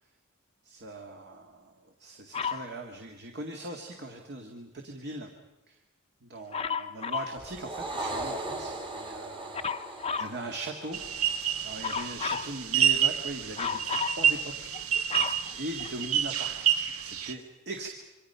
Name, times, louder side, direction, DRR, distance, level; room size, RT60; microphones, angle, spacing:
voice 1, 0.6-5.3 5.7-5.8 6.2-9.6 9.9-11.0 11.6-14.8 15.5-17.9, right 2 dB, 50° right, 3 dB, 2.0 m, -40 dB
Dog, 2.3-2.7 6.5-7.4 9.5-10.4 11.8-12.5 13.6-14.2 14.7-16.3 17.0-17.1, left 6 dB, 25° left, 0.7 m, -33 dB
sound 1, 7.3-11.9, right 2 dB, 25° right, 1.9 m, -38 dB
sound 2, 10.9-17.3, right 9 dB, 80° right, 1.3 m, -28 dB
27.5 x 24.5 x 5.7 m, 1.0 s
head